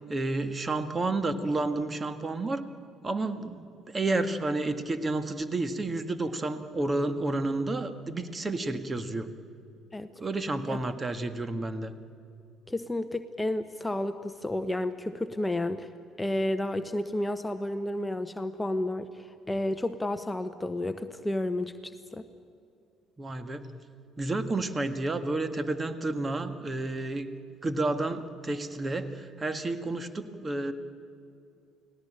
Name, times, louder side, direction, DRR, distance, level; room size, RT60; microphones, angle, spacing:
voice 1, 0.1-2.6 3.0-9.3 10.2-11.9 23.2-23.7 24.2-27.3 27.6-30.7, right 2 dB, 25° right, 10 dB, 1.7 m, -30 dB
voice 2, 12.7-15.9 16.2-22.2, left 1 dB, 10° left, 10 dB, 1.0 m, -31 dB
29.5 x 18.5 x 9.0 m, 2.5 s
figure-of-eight pair, 55°, 0 cm